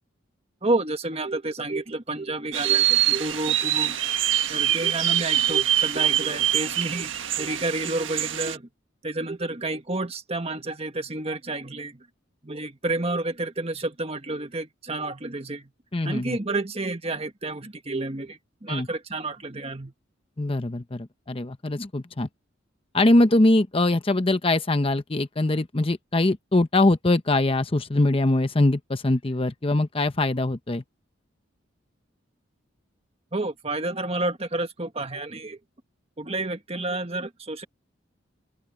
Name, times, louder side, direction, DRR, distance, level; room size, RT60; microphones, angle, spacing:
voice 1, 0.6-4.0 4.5-8.7 9.0-12.0 12.4-15.7 16.0-19.9 33.3-35.6 36.2-37.6, right 2 dB, 30° right, 1.6 m, -30 dB
sound 1, 2.5-8.6, right 11 dB, 80° right, 1.5 m, -24 dB
voice 2, 15.9-16.4 18.7-18.9 20.4-22.3 22.9-30.8, left 2 dB, 30° left, 0.8 m, -22 dB
open air
head